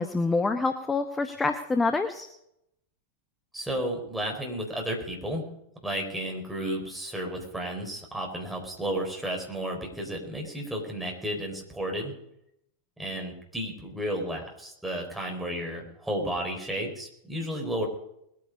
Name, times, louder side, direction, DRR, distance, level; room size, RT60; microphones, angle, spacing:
voice 1, 0.0-2.3, left 3 dB, 15° left, 8 dB, 0.9 m, -26 dB
voice 2, 3.5-5.4 5.8-12.1 13.0-17.9, right 1 dB, 5° right, 0 dB, 4.4 m, -32 dB
20.5 x 9.5 x 5.3 m, 0.78 s
figure-of-eight pair, 90°, 0 cm